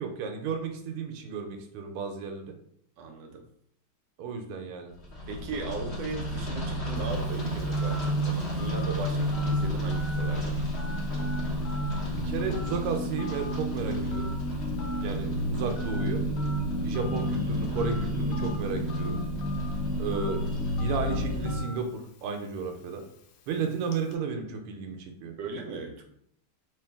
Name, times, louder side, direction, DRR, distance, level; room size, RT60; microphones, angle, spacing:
voice 1, 0.0-2.5 4.2-4.9 12.1-14.3 15.0-16.2 16.8-19.2 20.0-20.5 20.8-23.0 23.5-25.3, right 5 dB, 85° right, 4 dB, 1.5 m, -33 dB
voice 2, 3.0-3.4 5.3-10.7 15.0-15.2 25.4-26.0, right 3 dB, 70° right, 4 dB, 1.2 m, -38 dB
sound 1, 5.0-21.6, equal, 55° left, 0.7 m, -30 dB
Telephone, 7.1-24.1, left 2 dB, 85° left, 1.5 m, -47 dB
3.2 x 3.1 x 3.5 m, 0.67 s
omnidirectional pair, 2.4 m